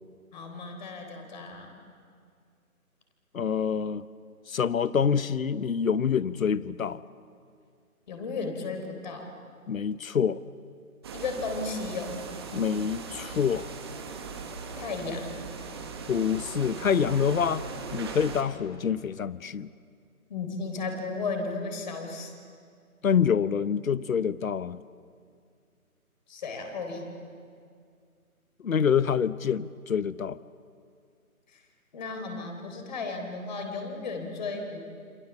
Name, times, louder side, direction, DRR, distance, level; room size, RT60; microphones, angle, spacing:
voice 1, 0.3-1.8 8.1-9.3 11.1-12.1 14.8-15.4 20.3-22.3 26.3-27.1 31.5-31.6 31.9-34.8, left 3 dB, 30° left, 4 dB, 3.8 m, -34 dB
voice 2, 3.3-4.0 4.5-7.0 9.7-10.4 12.5-13.7 16.1-17.6 17.9-19.7 23.0-24.8 28.6-30.4, left 7 dB, 65° left, 17 dB, 1.0 m, -26 dB
sound 1, 11.0-18.4, right 4 dB, 15° right, 1.4 m, -39 dB
27.5 x 27.5 x 7.2 m, 2.2 s
figure-of-eight pair, 160°, 45 cm